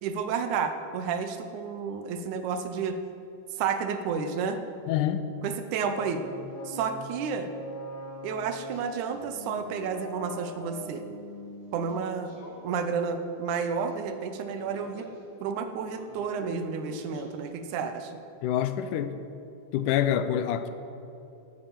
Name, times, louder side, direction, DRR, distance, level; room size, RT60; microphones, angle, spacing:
voice 1, 0.0-3.0 3.6-4.6 5.4-6.2 6.7-7.5 8.2-11.0 11.7-15.1 15.4-18.2, right 6 dB, 80° right, 8 dB, 2.1 m, -31 dB
voice 2, 4.9-5.4 18.4-19.2 19.7-20.7, left 10 dB, 85° left, 11 dB, 2.1 m, -26 dB
sound 1, 5.9-12.0 12.3-12.6 13.9-14.0 14.5-15.1 15.9-16.3 16.8-17.5, left 1 dB, 40° left, 2.4 m, -43 dB
11.0 x 8.8 x 7.5 m, 2.8 s
omnidirectional pair, 3.6 m